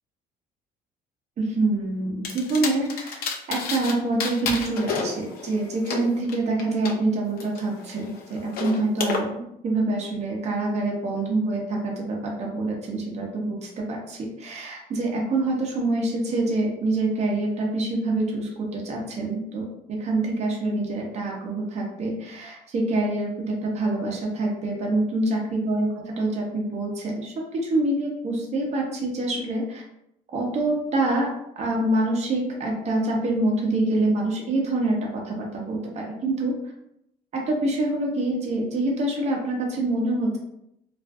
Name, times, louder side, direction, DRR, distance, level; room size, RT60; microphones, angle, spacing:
voice 1, 1.4-3.2 3.5-29.8 30.3-36.6 37.3-40.4, right 2 dB, 40° right, -1 dB, 0.6 m, -26 dB
sound 1, 2.2-3.9 4.2-6.9 7.4-9.2, left 5 dB, 65° left, 0.5 m, -31 dB
2.4 x 2.4 x 2.3 m, 0.79 s
cardioid pair, 110°, 17 cm